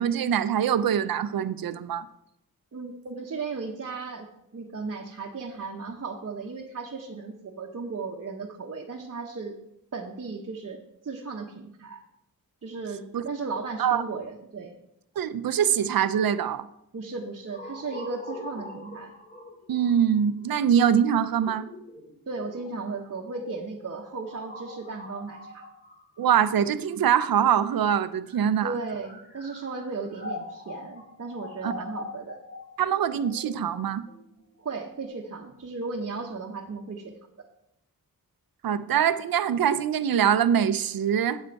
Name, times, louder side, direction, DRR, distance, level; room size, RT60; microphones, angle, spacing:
voice 1, 0.0-2.1 13.1-13.2 13.8-14.0 15.2-16.7 19.7-21.6 26.2-28.7 31.6-31.7 32.8-34.0 38.6-41.4, right 8 dB, 75° right, 14 dB, 0.6 m, -23 dB
voice 2, 2.7-4.3 4.5-9.6 9.9-12.0 12.6-14.7 16.9-19.1 22.3-25.6 28.6-32.4 34.6-37.1, right 4 dB, 45° right, 0 dB, 0.9 m, -36 dB
sound 1, 17.5-27.4 28.1-35.1, left 1 dB, 25° left, 2.1 m, -43 dB
8.3 x 7.5 x 4.6 m, 0.82 s
wide cardioid pair, 95°, 36 cm